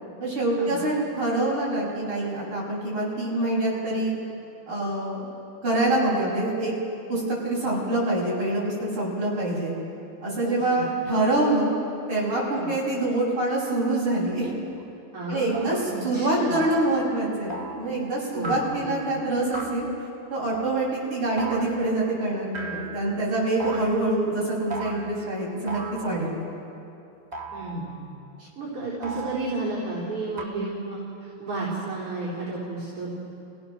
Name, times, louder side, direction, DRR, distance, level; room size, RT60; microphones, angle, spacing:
voice 1, 0.2-4.2 4.7-5.3 5.6-6.7 7.1-9.7 10.2-11.7 12.1-14.5 15.3-19.9 20.3-26.4, right 2 dB, 70° right, -6 dB, 7.1 m, -25 dB
voice 2, 10.5-10.9 12.5-12.7 15.1-16.6 18.3-19.0 27.5-27.9 28.6-33.1, right 2 dB, 90° right, -9 dB, 5.3 m, -32 dB
sound 1, 14.8-14.9 15.5-15.8 16.5-16.9 17.5-17.9 18.4-18.9 19.5-19.9 20.5-20.8 21.4-21.9 22.5-23.2 23.6-24.1 24.7-25.2 25.7-26.4 27.3-28.0 29.0-29.7 30.4-30.5, right 3 dB, 20° right, 1.4 m, -36 dB
29.5 x 17.5 x 6.4 m, 2.8 s
omnidirectional pair, 2.4 m